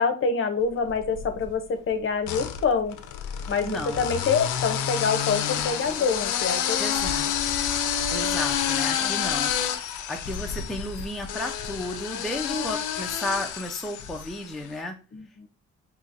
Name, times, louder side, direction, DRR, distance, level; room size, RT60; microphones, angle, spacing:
voice 1, 0.0-3.0 3.5-6.8 9.0-9.4 12.5-12.6 15.1-15.5, left 5 dB, 45° left, 7 dB, 0.6 m, -26 dB
sound 1, 0.9-1.5 2.2-14.5, left 9 dB, 85° left, 0.5 m, -29 dB
voice 2, 3.6-4.0 6.8-7.3 8.1-9.5 10.1-14.9, left 1 dB, ahead, 3 dB, 0.4 m, -33 dB
3.9 x 2.9 x 2.5 m, 0.34 s
cardioid pair, 90°, 30 cm